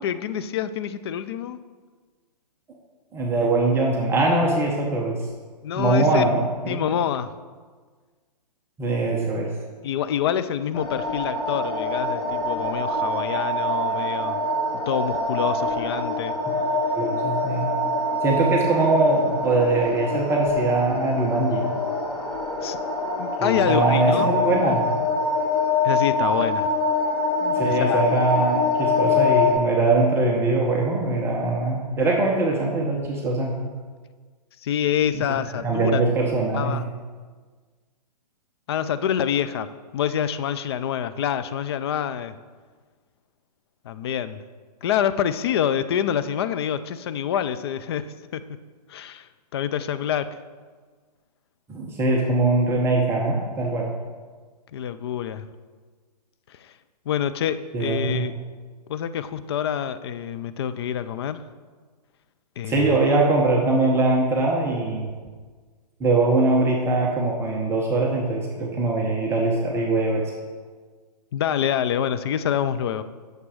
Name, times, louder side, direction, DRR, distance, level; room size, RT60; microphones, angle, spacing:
voice 1, 0.0-1.6 5.6-6.2 6.7-7.3 9.8-14.4 14.9-16.4 22.6-22.8 23.2-24.3 25.8-26.7 27.6-28.0 34.6-36.0 36.5-36.8 38.7-42.4 43.8-44.4 44.8-48.6 48.9-50.4 54.7-55.5 56.5-56.7 57.1-58.3 58.9-61.4 62.6-63.0 71.3-73.0, left 9 dB, 40° left, 12 dB, 0.4 m, -26 dB
voice 2, 3.1-5.2 5.7-6.8 8.8-9.5 17.0-17.7 18.2-21.7 23.4-24.8 27.4-33.5 35.1-35.2 35.6-36.8 51.7-53.9 57.7-58.3 62.7-65.1 66.0-70.3, right 2 dB, 10° right, -1 dB, 0.8 m, -22 dB
sound 1, 10.7-29.5, left 2 dB, 70° left, 2.4 m, -25 dB
8.7 x 6.7 x 4.9 m, 1.5 s
hypercardioid pair, 145°, 21 cm